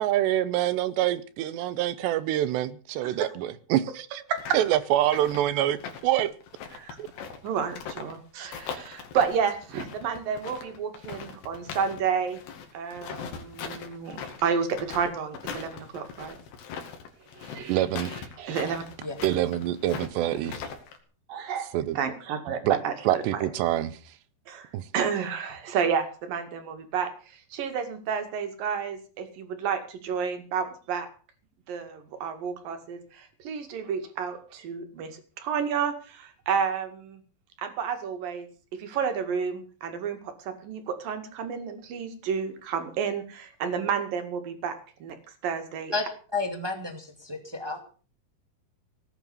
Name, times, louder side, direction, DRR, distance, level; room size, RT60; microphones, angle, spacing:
voice 1, 0.0-4.2 4.5-6.3 7.0-7.1 17.7-18.1 19.2-20.6 21.7-22.0 22.6-22.8 23.0-23.9 24.7-24.9, right 13 dB, 85° right, 15 dB, 3.1 m, -26 dB
sound 1, 4.4-8.2 8.5-12.0 12.3-21.0, left 6 dB, 80° left, 4.4 m, -40 dB
voice 2, 7.4-12.4 12.7-16.4 17.4-17.8 18.4-18.8 20.2-20.3 21.3-23.4 24.5-27.1 27.5-31.1 31.7-37.2 37.6-44.8 45.0-45.2 45.4-45.9, right 6 dB, 60° right, 8 dB, 3.5 m, -31 dB
voice 3, 46.3-47.8, left 3 dB, 10° right, 4 dB, 1.2 m, -31 dB
18.0 x 9.4 x 7.0 m, 0.39 s
omnidirectional pair, 4.8 m